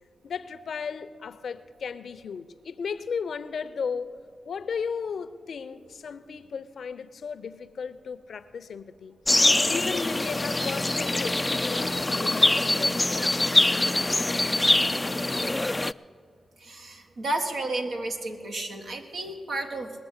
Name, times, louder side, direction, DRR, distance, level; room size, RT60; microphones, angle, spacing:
voice 1, 0.2-4.1 4.4-9.2 9.7-13.5, left 6 dB, 75° left, 0.6 m, -35 dB
sound 1, 9.3-15.9, left 2 dB, 25° left, 0.3 m, -24 dB
voice 2, 16.6-19.9, right 2 dB, 75° right, 1.6 m, -32 dB
20.0 x 7.1 x 8.1 m
supercardioid pair, 45°, 0 cm